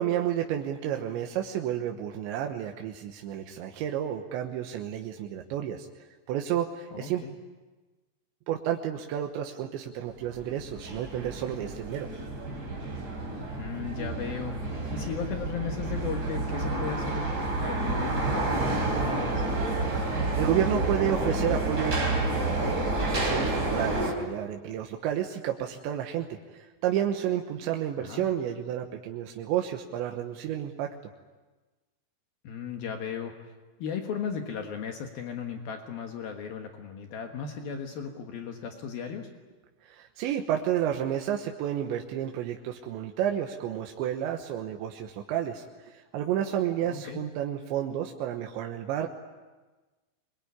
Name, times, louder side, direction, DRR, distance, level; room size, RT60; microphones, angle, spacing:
voice 1, 0.0-5.9 6.3-7.3 8.5-12.1 20.0-22.1 23.1-30.9 39.8-49.1, right 10 dB, 90° right, 3 dB, 3.5 m, -31 dB
voice 2, 6.9-7.3 13.6-14.6 14.9-19.4 28.0-28.3 32.4-33.4 33.8-39.3 46.8-47.2, left 6 dB, 65° left, 4 dB, 3.1 m, -36 dB
sound 1, 10.3-24.1, right 2 dB, 25° right, 4.1 m, -29 dB
24.5 x 22.0 x 9.7 m, 1.2 s
omnidirectional pair, 5.0 m